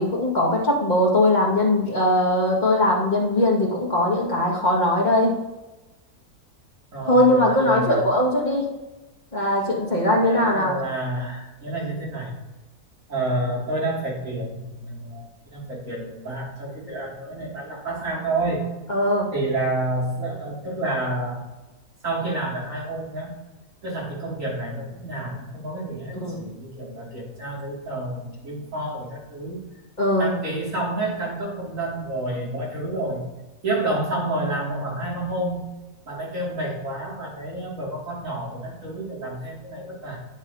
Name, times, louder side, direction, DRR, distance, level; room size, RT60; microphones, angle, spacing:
voice 1, 0.0-5.4 7.0-8.7 9.3-10.8 18.9-19.3 26.2-26.5 30.0-30.3, left 1 dB, 30° left, -3 dB, 2.0 m, -20 dB
voice 2, 6.9-8.0 10.2-12.3 13.1-18.6 19.3-21.4 22.0-23.3 23.8-29.6 30.2-33.3 33.6-35.7 36.0-40.2, right 2 dB, 55° right, -4 dB, 2.9 m, -29 dB
9.6 x 7.3 x 2.8 m, 1.1 s
omnidirectional pair, 1.6 m